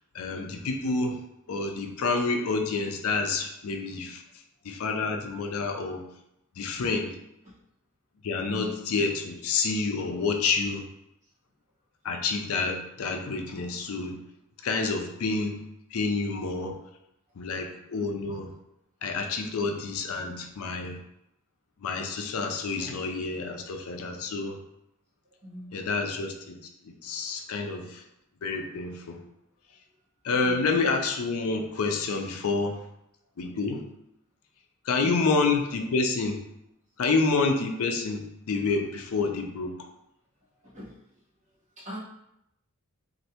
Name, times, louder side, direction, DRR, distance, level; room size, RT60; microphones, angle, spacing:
voice 1, 0.1-1.2 1.5-4.2 4.6-6.0 6.6-7.1 8.2-10.8 12.0-14.2 14.6-15.6 15.9-16.8 17.4-18.5 19.0-21.0 21.8-24.6 25.7-26.6 26.8-28.0 28.4-29.2 30.2-32.8 33.4-33.8 34.8-36.4 37.0-39.7, left 4 dB, 75° left, 4 dB, 0.5 m, -28 dB
voice 2, 25.4-25.7 30.4-30.8 35.0-35.2 40.6-40.9 41.8-42.0, equal, 35° right, -7 dB, 1.2 m, -40 dB
3.1 x 2.6 x 2.8 m, 0.80 s
head